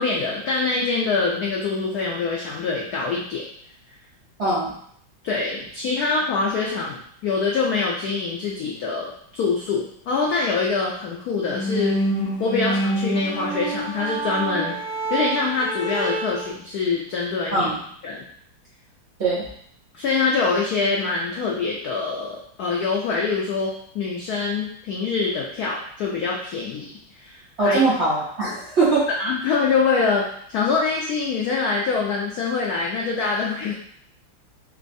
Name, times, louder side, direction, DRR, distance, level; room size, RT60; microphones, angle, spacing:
voice 1, 0.0-3.4 5.2-12.0 12.4-14.7 15.1-17.7 18.0-18.2 19.9-26.9 27.2-27.8 29.2-33.7, left 4 dB, 90° left, -3 dB, 0.8 m, -24 dB
voice 2, 4.4-4.7 17.5-17.8 19.2-19.5 27.6-29.1, right 3 dB, 70° right, -8 dB, 0.6 m, -21 dB
sound 1, 11.5-16.5, right 2 dB, 70° left, 1.1 m, -27 dB
3.4 x 3.0 x 2.6 m, 0.63 s
omnidirectional pair, 2.3 m